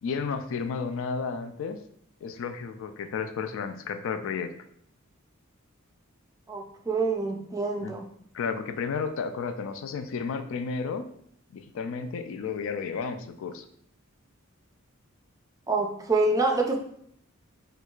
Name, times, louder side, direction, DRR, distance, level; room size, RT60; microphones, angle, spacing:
voice 1, 0.0-1.8 2.2-4.5 7.8-7.9 8.3-11.1 11.5-13.6, left 5 dB, 65° left, 8 dB, 0.3 m, -32 dB
voice 2, 6.5-8.1 15.7-16.8, right 3 dB, 15° right, 2 dB, 0.3 m, -26 dB
4.5 x 2.4 x 2.3 m, 0.67 s
head